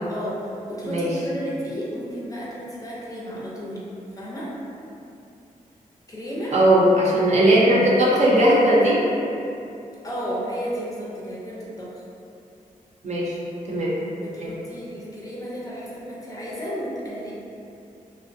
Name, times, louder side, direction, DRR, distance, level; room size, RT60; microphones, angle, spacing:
voice 1, 0.1-3.8 4.2-4.5 6.1-6.6 10.0-12.0 14.2-17.3, equal, 25° left, -6 dB, 0.5 m, -33 dB
voice 2, 0.8-1.1 6.5-9.1 13.0-13.4 13.7-13.9 14.4-14.5, right 1 dB, 55° right, -6 dB, 0.6 m, -18 dB
2.5 x 2.0 x 2.6 m, 2.7 s
cardioid pair, 90°, 14 cm